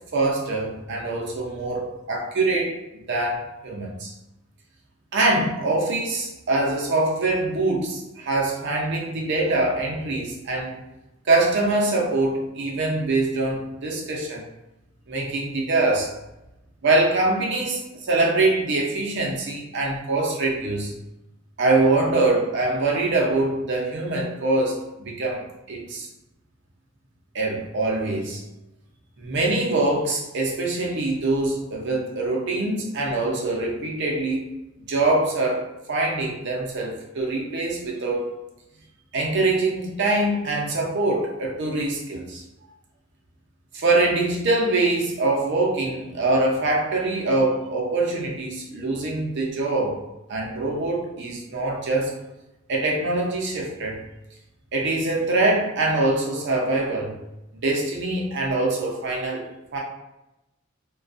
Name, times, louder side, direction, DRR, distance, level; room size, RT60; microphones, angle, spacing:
voice 1, 0.1-2.8 3.1-4.1 5.1-10.8 11.3-14.4 15.1-16.1 16.8-20.9 21.6-25.4 25.7-26.1 27.3-28.4 29.2-34.5 34.9-38.3 39.1-42.4 43.7-50.0 50.3-52.1 52.7-54.0 54.7-57.2 57.6-59.5 59.7-59.8, right 2 dB, 60° right, -1 dB, 0.6 m, -24 dB
2.3 x 2.2 x 2.5 m, 0.94 s
head